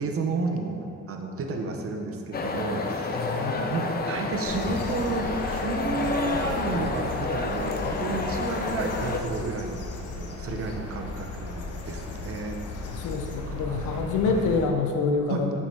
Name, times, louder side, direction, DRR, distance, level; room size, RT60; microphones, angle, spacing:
voice 1, 0.0-9.9 10.2-12.6 12.9-13.1 13.5-14.4 15.3-15.5, right 3 dB, 50° right, 3 dB, 0.8 m, -32 dB
sound 1, 2.3-9.2, left 3 dB, 30° left, 0.5 m, -30 dB
voice 2, 3.2-3.8 10.5-10.6 12.8-15.5, left 4 dB, 85° left, 3 dB, 0.7 m, -27 dB
sound 2, 4.4-14.6, left 2 dB, 55° left, 0.8 m, -36 dB
5.8 x 4.7 x 4.4 m, 2.5 s
cardioid pair, 90°, 30 cm